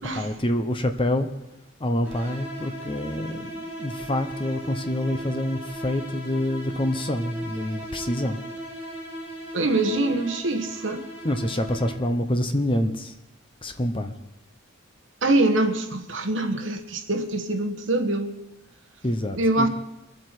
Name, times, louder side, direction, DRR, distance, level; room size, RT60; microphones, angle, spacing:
voice 1, 0.1-1.3 1.8-8.4 11.2-13.1 13.6-14.1 19.0-19.7, left 1 dB, 25° left, 0.8 m, -27 dB
sound 1, 2.0-12.3, right 1 dB, 10° right, 3.2 m, -37 dB
voice 2, 9.5-11.0 15.2-18.3 19.4-19.7, right 2 dB, 60° right, 1.3 m, -24 dB
23.5 x 7.9 x 4.5 m
head